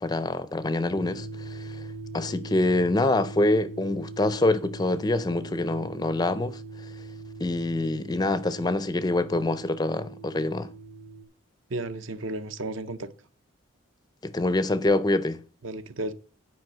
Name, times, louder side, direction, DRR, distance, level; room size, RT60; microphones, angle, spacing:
voice 1, 0.0-1.8 2.1-6.6 7.4-10.7 14.2-15.4, left 2 dB, 20° left, 0.4 m, -25 dB
sound 1, 0.9-11.2, right 2 dB, 30° right, 0.8 m, -41 dB
voice 2, 11.7-13.1 15.6-16.1, right 2 dB, 65° right, 0.7 m, -33 dB
9.4 x 5.0 x 6.0 m
head